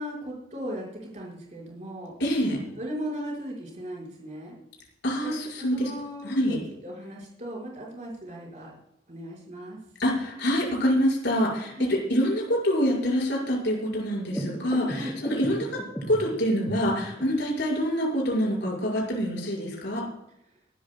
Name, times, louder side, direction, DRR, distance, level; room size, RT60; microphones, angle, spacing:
voice 1, 0.0-2.1 2.8-4.6 5.2-5.3 5.6-8.8 9.1-9.8 11.8-11.9 14.9-15.2, equal, 40° right, -3 dB, 5.7 m, -37 dB
voice 2, 2.2-2.6 5.0-5.9 6.2-6.6 10.0-20.1, equal, 65° left, -2 dB, 6.0 m, -26 dB
sound 1, 14.3-17.2, right 1 dB, 10° left, 3.7 m, -36 dB
24.0 x 12.5 x 2.4 m, 0.82 s
head